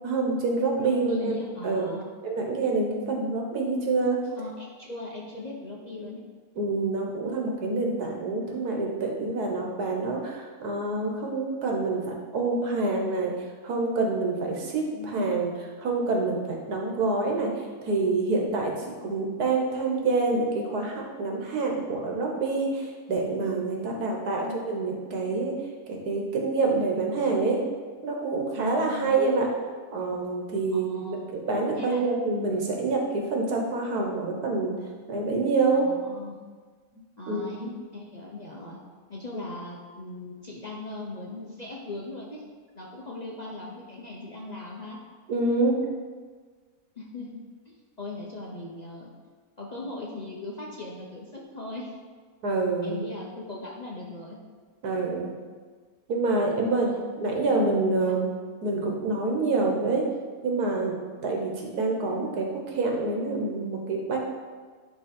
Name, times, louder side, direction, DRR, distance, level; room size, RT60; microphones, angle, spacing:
voice 1, 0.0-1.9 2.2-4.2 6.6-13.3 13.6-15.5 15.8-17.5 17.8-25.5 25.9-27.6 28.0-29.5 29.9-34.7 35.1-35.9 37.3-37.7 45.3-45.8 52.4-53.0 54.8-55.3 56.1-56.9 57.2-58.3 58.6-60.0 60.4-61.0 61.2-64.2, right 3 dB, 85° right, 0 dB, 1.7 m, -27 dB
voice 2, 0.7-2.1 4.4-6.2 14.9-15.4 23.8-24.6 28.5-29.2 30.7-31.2 31.7-32.0 35.7-36.4 37.2-38.8 39.1-42.4 42.7-45.0 47.0-49.1 49.6-51.9 52.8-54.4 56.8-57.0 57.9-58.1, left 2 dB, 40° left, -3 dB, 0.7 m, -39 dB
10.5 x 3.5 x 4.3 m, 1.5 s
omnidirectional pair, 1.6 m